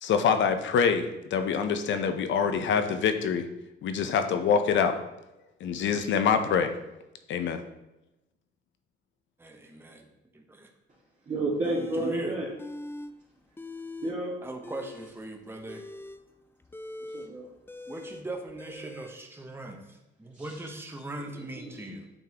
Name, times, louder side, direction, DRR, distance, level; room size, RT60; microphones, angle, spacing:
voice 1, 0.0-3.5 3.8-4.9 5.6-6.7 7.3-7.6, left 6 dB, 70° left, 8 dB, 0.7 m, -25 dB
voice 2, 9.4-10.7 12.0-12.4 14.4-15.9 17.9-22.1, right 2 dB, 10° right, 3 dB, 0.9 m, -40 dB
voice 3, 11.3-12.5 14.0-14.3 17.1-17.5 20.3-20.6 21.3-21.9, right 2 dB, 40° right, -9 dB, 2.0 m, -31 dB
sound 1, 11.6-12.2 12.6-13.1 13.4-14.2 14.5-19.2, left 2 dB, 10° left, 0.4 m, -42 dB
8.8 x 3.7 x 2.9 m, 0.94 s
cardioid pair, 90°, 20 cm